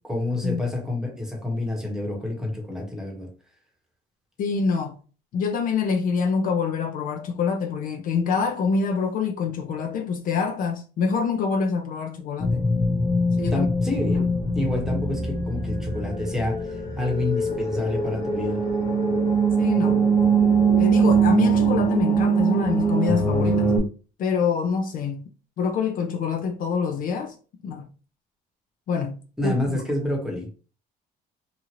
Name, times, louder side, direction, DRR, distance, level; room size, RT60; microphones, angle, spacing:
voice 1, 0.0-3.3 13.5-14.3 14.5-18.6 29.4-30.5, left 1 dB, 5° right, 1.0 m, -28 dB
voice 2, 4.4-5.0 5.3-12.7 13.4-13.7 19.6-20.0 20.8-23.8 24.2-25.2 25.6-27.3 27.6-27.9 28.9-29.2 29.4-29.5, left 5 dB, 55° left, 0.5 m, -25 dB
sound 1, 12.4-23.8, right 4 dB, 20° left, 1.0 m, -22 dB
2.8 x 2.5 x 2.9 m
cardioid pair, 110°, 17 cm